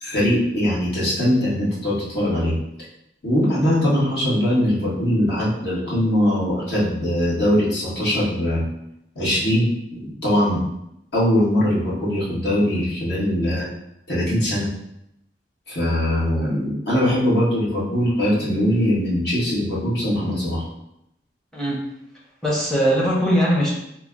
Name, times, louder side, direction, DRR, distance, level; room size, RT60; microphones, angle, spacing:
voice 1, 0.0-2.5 3.2-8.6 9.1-10.6 11.1-13.7 14.1-14.7 15.7-20.6, equal, 65° left, -8 dB, 1.3 m, -21 dB
voice 2, 21.5-21.8 22.4-23.7, equal, 5° left, -4 dB, 0.7 m, -20 dB
3.0 x 2.0 x 3.6 m, 0.80 s
head